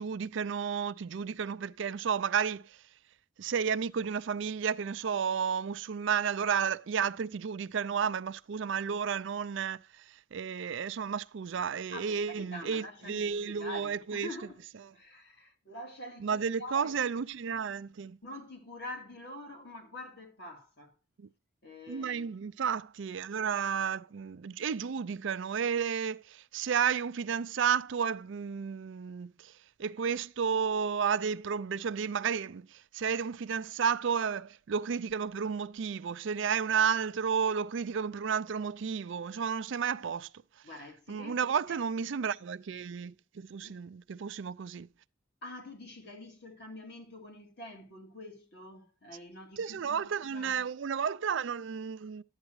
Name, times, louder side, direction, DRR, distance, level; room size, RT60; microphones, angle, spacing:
voice 1, 0.0-2.8 3.4-10.0 10.3-14.3 16.2-18.2 21.9-29.5 29.8-40.3 41.1-44.9 49.6-52.2, right 7 dB, 65° right, 0.4 m, -32 dB
voice 2, 11.9-14.6 14.9-17.0 18.2-20.9 21.6-22.3 40.6-41.8 43.6-43.8 45.4-50.6, left 1 dB, 55° left, 2.6 m, -46 dB
11.5 x 9.0 x 3.1 m
head